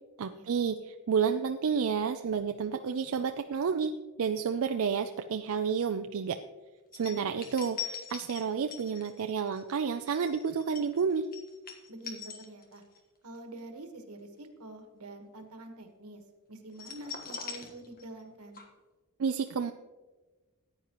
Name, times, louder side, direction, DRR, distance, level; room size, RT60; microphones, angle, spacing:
voice 1, 0.2-3.9 4.2-6.4 6.9-11.3 19.2-19.7, right 6 dB, 65° right, 7 dB, 0.4 m, -30 dB
sound 1, 6.9-13.0 13.3-13.6 16.7-18.3 18.5-18.6, left 7 dB, 40° left, 1.5 m, -42 dB
voice 2, 7.0-7.3 11.9-12.8 13.2-16.2 16.5-18.6, right 2 dB, 90° right, 5 dB, 1.4 m, -46 dB
14.5 x 9.4 x 3.0 m, 1.2 s
head